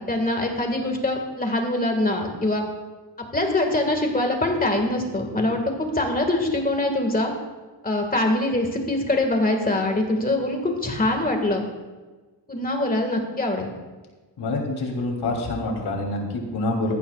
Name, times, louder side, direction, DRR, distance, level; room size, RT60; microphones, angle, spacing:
voice 1, 0.1-2.7 3.3-7.3 7.8-11.7 12.5-13.7, left 1 dB, 20° left, 3 dB, 1.8 m, -23 dB
voice 2, 14.4-16.9, left 2 dB, 60° left, 1 dB, 3.1 m, -26 dB
18.0 x 14.5 x 2.4 m, 1.3 s
wide cardioid pair, 155°, 45 cm